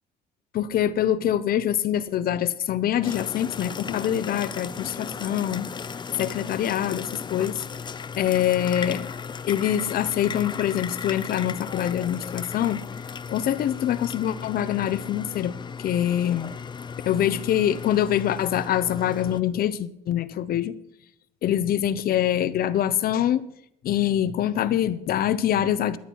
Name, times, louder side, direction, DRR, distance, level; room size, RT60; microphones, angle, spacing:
voice 1, 0.5-5.7 6.2-7.6 8.2-9.1 9.4-12.8 13.3-16.5 17.0-20.7 21.4-23.4 23.8-26.0, left 11 dB, 60° left, 15 dB, 0.9 m, -24 dB
sound 1, 3.0-19.4, left 6 dB, 25° left, 0.6 m, -36 dB
17.5 x 10.5 x 4.7 m, 0.77 s
cardioid pair, 110°, 17 cm